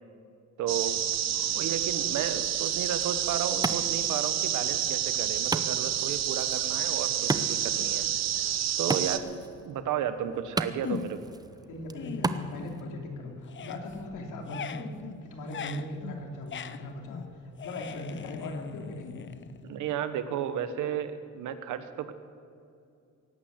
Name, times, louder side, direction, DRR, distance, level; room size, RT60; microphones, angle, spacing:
voice 1, 0.6-1.0 1.5-8.1 8.8-9.4 9.6-11.3 19.6-22.1, right 9 dB, 85° right, 10 dB, 1.2 m, -33 dB
sound 1, 0.7-9.2, right 10 dB, 60° right, 0.9 m, -29 dB
Wood, 2.8-12.8, right 2 dB, 15° right, 0.7 m, -37 dB
sound 2, 10.8-11.4 11.8-13.1 13.4-19.9, left 8 dB, 40° left, 0.6 m, -41 dB
voice 2, 11.7-14.9 15.2-17.2 17.6-19.2, left 1 dB, 85° left, 2 dB, 2.8 m, -39 dB
18.0 x 8.7 x 8.0 m, 2.5 s
cardioid pair, 90°, 30 cm